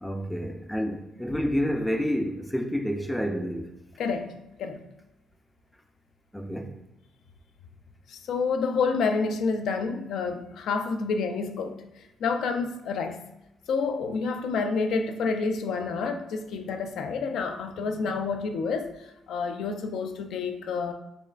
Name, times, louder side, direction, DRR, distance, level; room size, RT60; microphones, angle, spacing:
voice 1, 0.0-3.7 6.3-6.7, equal, 5° left, 0.4 m, -29 dB
voice 2, 4.0-4.3 4.6-4.8 8.1-11.8 12.2-13.2 13.7-20.9, left 4 dB, 75° left, 0.4 m, -29 dB
4.2 x 3.1 x 2.4 m
cardioid pair, 90°, 0 cm